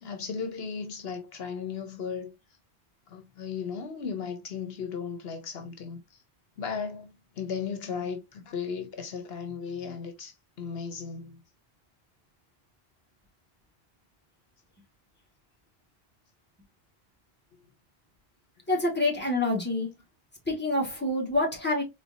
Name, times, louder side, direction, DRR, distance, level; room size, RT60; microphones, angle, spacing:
voice 1, 0.0-2.3 3.1-6.2 6.6-11.4, left 6 dB, 75° left, 1.1 m, -36 dB
voice 2, 18.7-19.9 20.5-21.8, left 2 dB, 10° left, 1.7 m, -27 dB
4.2 x 3.8 x 2.7 m
omnidirectional pair, 1.0 m